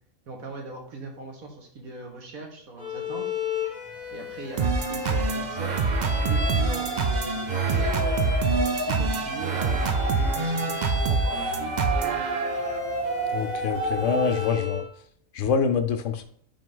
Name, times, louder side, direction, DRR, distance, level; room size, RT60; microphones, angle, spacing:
voice 1, 0.3-3.3 4.1-12.2, right 3 dB, 85° right, 2 dB, 1.9 m, -40 dB
Bowed string instrument, 2.8-14.9, left 5 dB, 30° left, 1.7 m, -35 dB
sound 1, 3.9-4.0 4.3-14.5, right 2 dB, 20° right, 1.5 m, -33 dB
sound 2, 4.6-12.8, right 4 dB, 50° right, 0.6 m, -26 dB
voice 2, 13.3-14.8 15.3-16.2, left 6 dB, 70° left, 8 dB, 1.0 m, -25 dB
5.5 x 4.6 x 3.8 m, 0.63 s
omnidirectional pair, 1.4 m